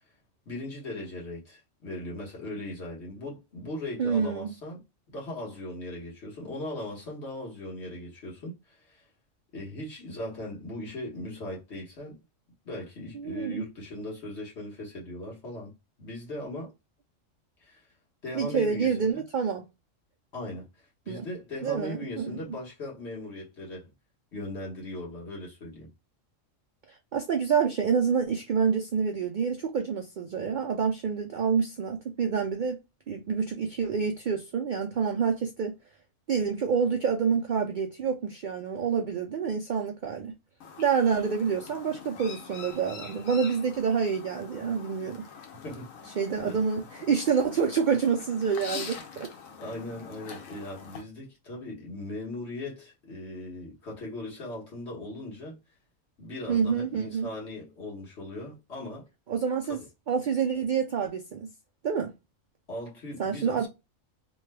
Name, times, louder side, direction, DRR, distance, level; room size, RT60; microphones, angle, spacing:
voice 1, 0.5-4.8 5.1-9.1 9.5-12.2 12.6-15.7 16.0-16.7 17.6-17.8 18.2-19.2 20.3-20.6 21.1-23.9 24.3-25.9 45.6-46.6 49.6-55.6 56.2-59.1 59.7-59.8 62.7-63.7, left 1 dB, 55° left, 1.5 m, -39 dB
voice 2, 4.0-4.5 13.1-13.6 18.3-19.6 21.1-21.3 21.6-22.3 26.9-32.8 33.1-35.7 36.3-40.3 40.8-45.2 46.2-49.3 56.5-57.3 59.3-59.8 60.1-61.5 61.8-62.1 63.2-63.7, right 6 dB, 90° right, 0.4 m, -27 dB
Chirp tweet, 40.6-51.0, left 6 dB, 85° left, 1.1 m, -44 dB
3.1 x 2.2 x 3.2 m
omnidirectional pair, 1.4 m